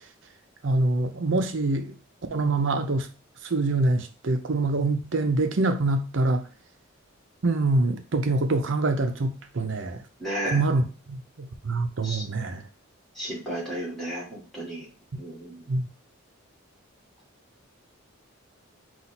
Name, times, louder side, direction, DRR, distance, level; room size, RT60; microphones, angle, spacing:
voice 1, 0.6-1.9 2.3-3.1 3.5-6.4 7.4-10.0 10.4-12.6 15.1-15.2 15.7-15.9, right 2 dB, 65° right, 0.6 m, -25 dB
voice 2, 10.2-10.6 12.0-12.2 13.2-14.9 15.1-15.7, equal, ahead, 1.8 m, -33 dB
4.2 x 2.4 x 4.1 m
head